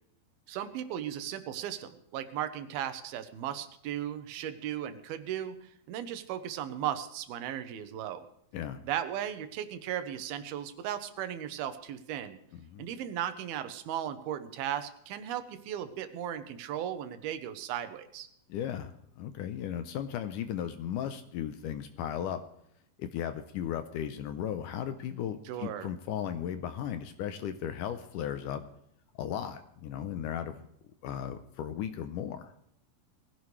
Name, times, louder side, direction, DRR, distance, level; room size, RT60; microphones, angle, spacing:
voice 1, 0.5-8.3 8.8-12.4 12.8-18.3 25.5-25.9, right 10 dB, 85° right, 11 dB, 2.9 m, -36 dB
voice 2, 12.5-12.9 18.5-22.4 23.0-28.6 29.2-30.7 31.0-32.5, left 9 dB, 75° left, 10 dB, 2.0 m, -36 dB
20.5 x 15.5 x 3.3 m, 0.73 s
omnidirectional pair, 4.3 m